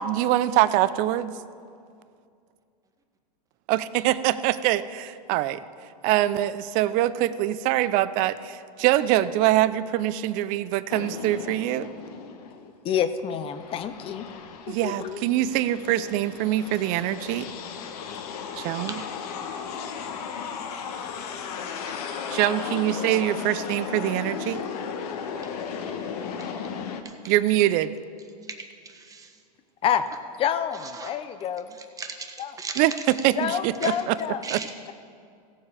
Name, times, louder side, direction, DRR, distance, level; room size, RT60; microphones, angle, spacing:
voice 1, 0.0-1.3 3.7-5.6 6.0-11.9 14.7-17.5 18.6-18.9 22.3-24.6 27.3-27.9 32.8-32.9 33.2-34.2 34.5-34.6, right 14 dB, 40° right, 15 dB, 0.5 m, -24 dB
sound 1, 10.9-12.7 13.2-27.0, left 6 dB, 65° left, 1.1 m, -35 dB
voice 2, 12.8-14.2 14.7-15.2 29.8-30.0 30.4-31.6 32.4-32.5 33.4-34.4, left 9 dB, 25° left, 11 dB, 0.6 m, -27 dB
voice 3, 21.6-22.0 26.4-26.5 27.0-27.3 28.5-29.4 30.7-31.1 31.7-33.2 33.8-33.9 34.4-34.7, right 4 dB, 15° right, 4 dB, 1.1 m, -39 dB
16.5 x 7.3 x 4.9 m, 2.3 s
supercardioid pair, 130°, 21 cm